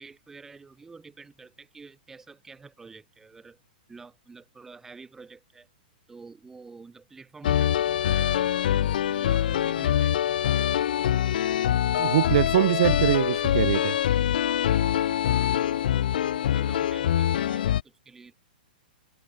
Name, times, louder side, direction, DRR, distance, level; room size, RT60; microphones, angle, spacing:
voice 1, 0.0-3.6 3.9-5.7 6.1-11.4 15.4-18.3, right 4 dB, 10° right, 7.9 m, -49 dB
sound 1, 7.4-17.8, left 11 dB, 65° left, 1.0 m, -24 dB
voice 2, 12.0-14.0, right 14 dB, 50° right, 1.2 m, -23 dB
hypercardioid pair, 160°, 5 cm